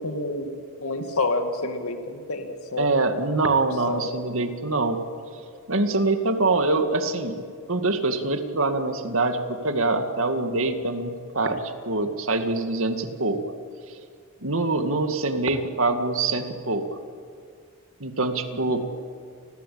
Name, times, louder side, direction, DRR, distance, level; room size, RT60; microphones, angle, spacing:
voice 1, 0.0-2.9 3.9-4.0 18.7-18.9, left 2 dB, 90° left, 6 dB, 2.4 m, -29 dB
voice 2, 2.8-5.0 5.7-7.4 7.7-13.4 14.4-16.8 18.0-18.9, right 3 dB, 65° right, 7 dB, 2.2 m, -24 dB
29.0 x 21.0 x 8.7 m, 2.2 s
head